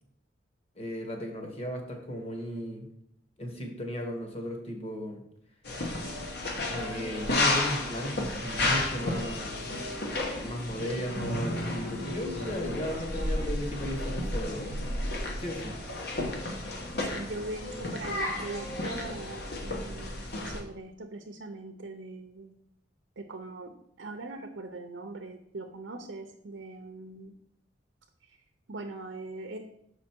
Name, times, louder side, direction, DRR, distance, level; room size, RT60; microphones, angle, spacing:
voice 1, 0.7-2.9 3.4-5.2 6.6-9.7 10.4-14.7 15.4-15.7, equal, 35° left, 3 dB, 1.3 m, -35 dB
sound 1, 5.6-20.6, left 2 dB, 55° left, 1.2 m, -32 dB
voice 2, 17.1-20.2 20.5-22.5 23.2-27.3 28.7-29.6, right 2 dB, 80° right, 4 dB, 0.7 m, -41 dB
6.3 x 5.1 x 4.5 m, 0.74 s
head